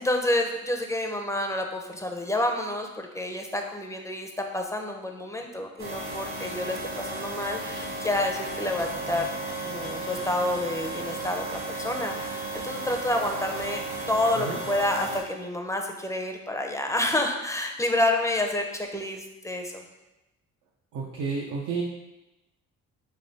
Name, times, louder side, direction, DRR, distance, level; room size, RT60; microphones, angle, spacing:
voice 1, 0.0-9.3 9.6-11.4 11.7-19.8, left 1 dB, 10° left, 3 dB, 0.5 m, -29 dB
sound 1, 5.8-15.2, right 2 dB, 65° right, 1.3 m, -34 dB
voice 2, 20.9-21.8, right 5 dB, 85° right, -2 dB, 0.6 m, -31 dB
3.4 x 3.3 x 4.0 m, 1.0 s
cardioid pair, 90°, 30 cm